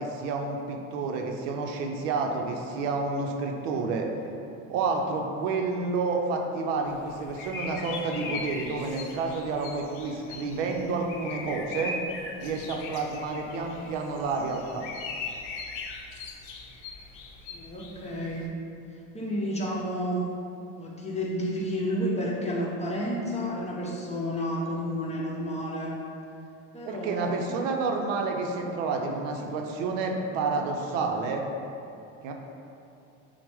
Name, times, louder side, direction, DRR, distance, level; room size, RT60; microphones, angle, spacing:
voice 1, 0.0-4.1 4.7-12.0 12.4-14.9 26.9-31.4 32.2-32.3, right 4 dB, 90° right, 2 dB, 0.6 m, -29 dB
sound 1, 6.9-18.5, left 4 dB, 65° left, 0.7 m, -40 dB
voice 2, 17.5-18.5 19.1-20.2 20.8-25.9 26.7-27.4, equal, 20° left, -4 dB, 0.8 m, -31 dB
5.9 x 2.1 x 3.4 m, 2.7 s
supercardioid pair, 95°, 37 cm